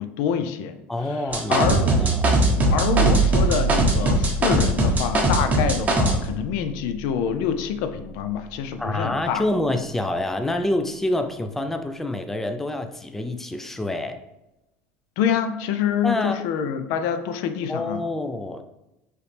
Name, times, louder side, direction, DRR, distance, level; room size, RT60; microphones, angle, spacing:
voice 1, 0.0-0.8 1.1-1.2 1.5-1.9 2.7-9.4 15.2-18.0, left 8 dB, 70° left, 9 dB, 0.4 m, -26 dB
voice 2, 0.9-1.7 2.0-2.4 8.8-14.2 16.0-16.4 17.7-18.6, left 1 dB, 5° left, 7 dB, 0.4 m, -27 dB
sound 1, 1.3-6.2, right 1 dB, 25° right, 1.0 m, -20 dB
sound 2, 1.7-8.0, right 5 dB, 60° right, 0.4 m, -26 dB
4.8 x 3.1 x 3.3 m, 0.93 s
supercardioid pair, 115°, 6 cm